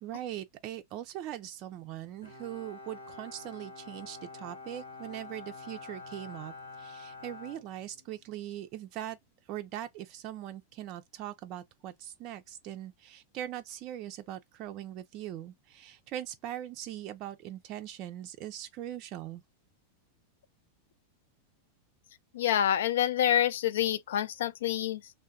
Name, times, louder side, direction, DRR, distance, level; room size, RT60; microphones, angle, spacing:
voice 1, 0.0-9.2 9.5-19.4, right 12 dB, 40° right, 0.4 m, -41 dB
Bowed string instrument, 2.2-8.4, left 3 dB, 75° left, 1.6 m, -47 dB
voice 2, 22.3-25.1, left 11 dB, 60° left, 0.4 m, -27 dB
3.3 x 2.2 x 2.7 m
figure-of-eight pair, 90°, 0 cm